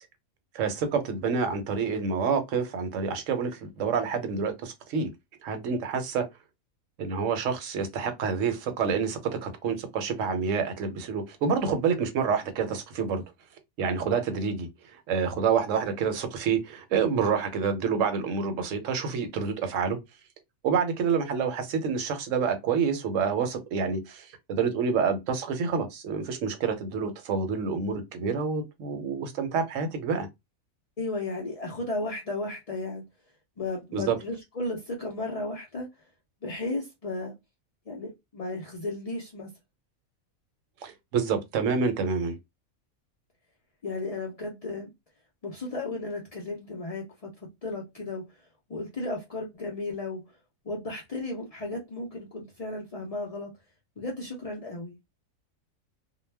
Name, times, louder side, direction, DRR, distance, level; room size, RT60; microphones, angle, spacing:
voice 1, 0.5-5.1 5.4-6.2 7.0-13.2 13.8-20.0 20.6-30.3 33.9-34.2 40.8-42.4, right 6 dB, 70° right, 1.0 m, -28 dB
voice 2, 31.0-33.0 33.6-35.9 36.4-37.3 37.9-39.5 43.8-44.9 45.4-47.3 47.6-48.4 48.7-50.4 50.6-53.5 54.0-55.0, left 2 dB, 70° left, 0.3 m, -34 dB
2.2 x 2.1 x 3.2 m
omnidirectional pair, 1.4 m